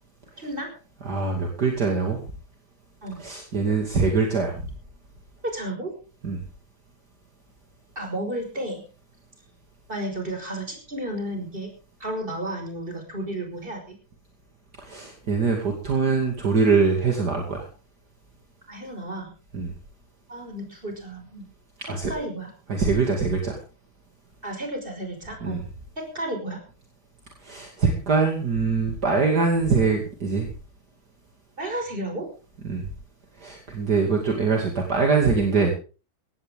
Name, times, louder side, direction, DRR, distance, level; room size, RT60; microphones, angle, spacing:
voice 1, 0.4-0.7 3.0-3.2 5.4-5.9 8.0-8.8 9.9-11.7 12.0-13.9 18.7-19.3 20.3-21.5 21.8-22.5 24.4-25.6 26.0-26.6 31.6-32.3 34.9-35.0, right 1 dB, 25° right, 3 dB, 5.5 m, -32 dB
voice 2, 1.0-2.2 3.2-4.5 6.2-6.4 14.8-17.6 19.5-19.7 21.8-22.1 22.7-23.6 25.4-25.6 27.4-30.5 32.6-32.9 33.4-35.7, right 4 dB, 55° right, 1 dB, 3.1 m, -23 dB
17.5 x 15.5 x 3.7 m, 0.35 s
omnidirectional pair, 2.2 m